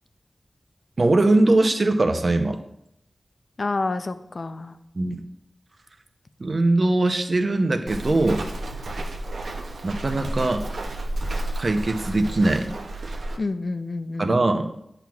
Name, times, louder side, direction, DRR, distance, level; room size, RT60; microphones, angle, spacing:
voice 1, 1.0-2.6 5.0-5.2 6.4-8.4 9.4-9.5 9.8-10.6 11.6-12.7 14.2-14.7, right 2 dB, 50° right, 6 dB, 0.6 m, -21 dB
voice 2, 3.6-4.8 13.4-14.4, left 3 dB, 55° left, 10 dB, 0.4 m, -28 dB
Walk footsteps, 7.9-13.4, right 1 dB, 90° right, 0.6 m, -31 dB
8.8 x 6.0 x 2.4 m, 0.79 s
wide cardioid pair, 65°, 0 cm